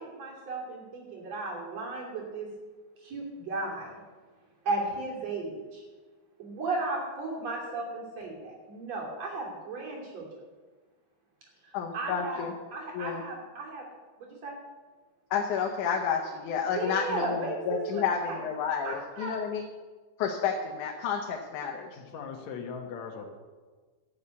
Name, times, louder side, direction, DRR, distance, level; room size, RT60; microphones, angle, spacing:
voice 1, 0.0-2.5 3.0-3.9 4.7-5.8 6.4-10.3 11.6-12.5 12.7-13.8 14.2-14.6 16.7-18.4 18.8-19.3, right 3 dB, 60° right, -2 dB, 4.1 m, -35 dB
voice 2, 11.7-12.5 12.9-13.2 15.3-19.6 20.2-21.9, left 6 dB, 85° left, 2 dB, 2.5 m, -30 dB
voice 3, 22.0-23.3, left 6 dB, 70° left, 2 dB, 2.6 m, -39 dB
13.0 x 7.0 x 8.3 m, 1.4 s
omnidirectional pair, 3.5 m